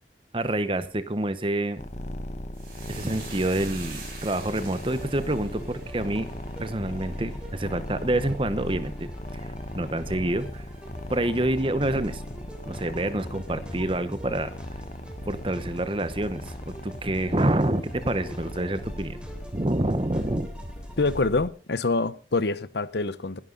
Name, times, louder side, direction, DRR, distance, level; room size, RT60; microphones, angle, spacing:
voice 1, 0.3-1.8 2.9-6.3 6.6-9.1 9.3-10.6 11.1-14.5 15.3-16.5 16.8-19.2 19.5-20.5, right 1 dB, 30° right, 0.9 m, -27 dB
sound 1, 1.8-21.5, left 1 dB, 40° left, 1.2 m, -38 dB
sound 2, 2.5-11.1 11.4-12.1 12.4-12.6, right 4 dB, 50° right, 6.4 m, -47 dB
sound 3, 4.8-21.2, equal, 5° right, 3.2 m, -43 dB
voice 2, 21.0-23.4, left 3 dB, 70° left, 0.9 m, -26 dB
21.0 x 11.0 x 3.9 m
head